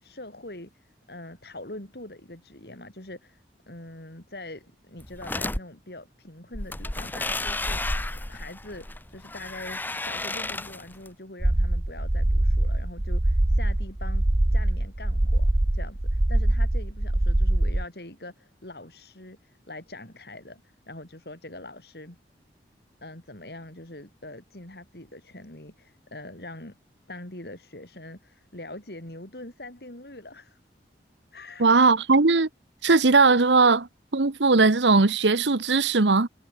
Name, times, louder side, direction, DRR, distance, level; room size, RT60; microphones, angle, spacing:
voice 1, 0.0-8.0 8.3-14.2 14.5-22.2 23.0-26.8 27.1-30.6 31.3-31.7, left 2 dB, 65° left, 4.4 m, -43 dB
sound 1, 5.0-5.6 6.5-11.1, left 2 dB, 10° left, 1.0 m, -32 dB
sound 2, 11.4-17.9, right 1 dB, 25° right, 0.6 m, -23 dB
voice 2, 31.6-32.5 32.8-33.9 34.1-36.3, right 3 dB, 90° right, 1.1 m, -19 dB
head